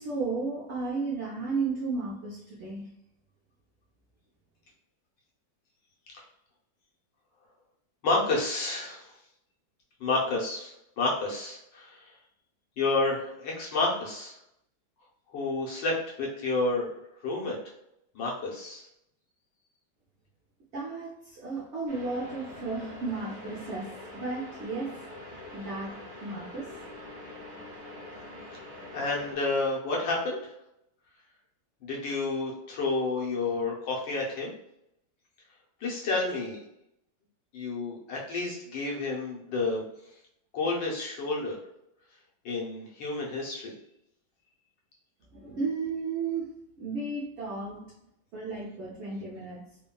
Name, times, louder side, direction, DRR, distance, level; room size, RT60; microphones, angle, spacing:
voice 1, 0.0-2.9 20.7-23.9 24.1-25.0 25.5-25.9 26.2-26.7 45.3-46.5 46.8-47.9 48.3-49.6, right 4 dB, 85° right, -4 dB, 0.6 m, -33 dB
voice 2, 8.0-9.1 10.0-12.1 12.8-14.3 15.3-16.9 17.2-17.6 18.1-18.9 28.9-30.5 31.8-34.5 35.8-36.6 37.5-39.8 40.5-41.6 42.4-43.7, left 3 dB, 85° left, -3 dB, 1.5 m, -30 dB
sound 1, 21.9-29.4, left 1 dB, 35° right, 0.8 m, -44 dB
3.5 x 2.2 x 2.2 m, 0.80 s
omnidirectional pair, 1.9 m